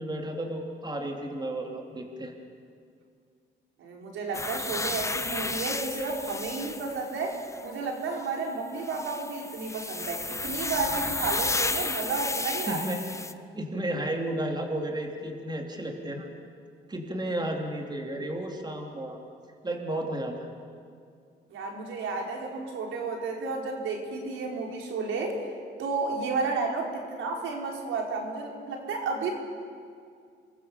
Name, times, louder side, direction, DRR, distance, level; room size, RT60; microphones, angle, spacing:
voice 1, 0.0-2.3 12.7-13.0 13.5-16.3 16.9-19.2 19.6-20.5, right 1 dB, 20° right, 2 dB, 3.6 m, -33 dB
voice 2, 3.8-13.0 21.5-25.4 25.8-29.3, right 3 dB, 80° right, 0 dB, 4.8 m, -32 dB
sound 1, 4.3-7.6 8.8-13.3, left 2 dB, 15° left, 1.1 m, -33 dB
28.5 x 22.5 x 7.1 m, 2.2 s
cardioid pair, 90°, 20 cm